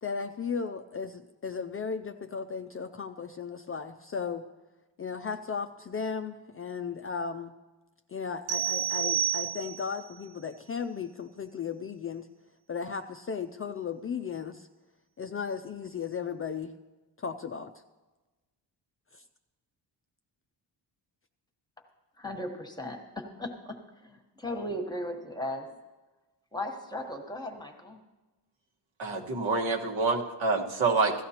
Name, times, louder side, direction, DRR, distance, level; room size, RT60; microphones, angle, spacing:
voice 1, 0.0-4.5 5.0-7.5 8.1-12.3 12.7-14.7 15.2-16.7 17.2-17.7 19.1-19.2, left 6 dB, 30° left, 7 dB, 0.4 m, -35 dB
sound 1, 8.5-10.0, right 10 dB, 55° right, 0.9 m, -30 dB
voice 2, 22.2-25.7 26.5-28.0, left 1 dB, 10° left, 3 dB, 1.2 m, -37 dB
voice 3, 29.0-31.1, right 4 dB, 80° right, 0 dB, 1.6 m, -27 dB
16.5 x 13.5 x 2.9 m, 1.2 s
wide cardioid pair, 140°, 45 cm